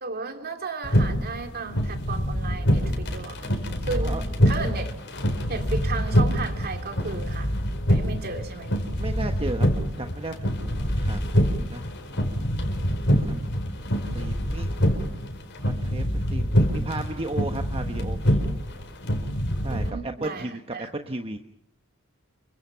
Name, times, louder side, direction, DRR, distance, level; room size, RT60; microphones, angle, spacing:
voice 1, 0.0-3.5 3.8-4.2 4.4-4.9 5.5-7.5 7.9-8.9 13.3-13.5 19.6-20.9, right 4 dB, 45° right, 6 dB, 2.8 m, -34 dB
sound 1, 0.8-19.9, equal, 55° left, 4.6 m, -25 dB
voice 2, 9.0-11.8 13.1-13.3 14.1-14.8 15.6-16.0 16.3-18.5 19.6-21.4, right 2 dB, 25° right, 5 dB, 1.3 m, -35 dB
28.0 x 24.0 x 5.8 m, 0.70 s
head